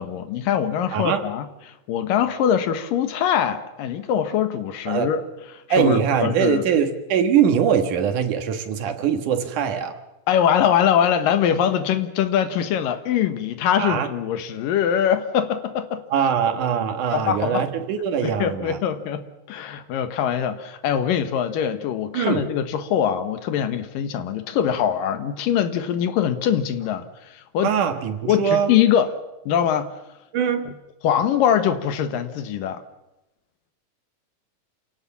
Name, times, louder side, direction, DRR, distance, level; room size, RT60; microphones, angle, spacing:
voice 1, 0.0-5.2 5.7-6.6 10.3-16.0 17.1-17.6 18.2-27.1 27.3-27.7 28.3-29.1 29.5-29.9 30.7-30.8 31.0-32.8, left 9 dB, 75° left, 9 dB, 2.9 m, -23 dB
voice 2, 0.9-1.2 4.9-5.1 5.7-10.0 13.8-14.1 16.1-18.8 22.1-22.5 27.6-28.7 30.3-30.7, right 8 dB, 65° right, 7 dB, 2.9 m, -22 dB
27.5 x 17.5 x 7.2 m, 0.99 s
omnidirectional pair, 4.1 m